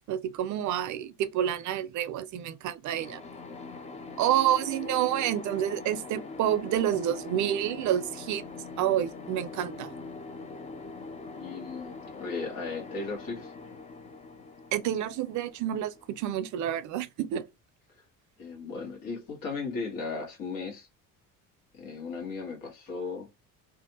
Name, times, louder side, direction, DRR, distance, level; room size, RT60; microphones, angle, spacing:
voice 1, 0.1-3.2 4.2-8.5 8.8-9.9 14.7-17.5, right 11 dB, 60° right, 0.5 m, -29 dB
sound 1, 2.9-16.5, left 4 dB, 20° left, 0.4 m, -43 dB
voice 2, 11.3-13.5 18.4-20.9 21.7-23.3, left 4 dB, 80° left, 1.4 m, -36 dB
2.6 x 2.4 x 2.7 m
cardioid pair, 115°, 33 cm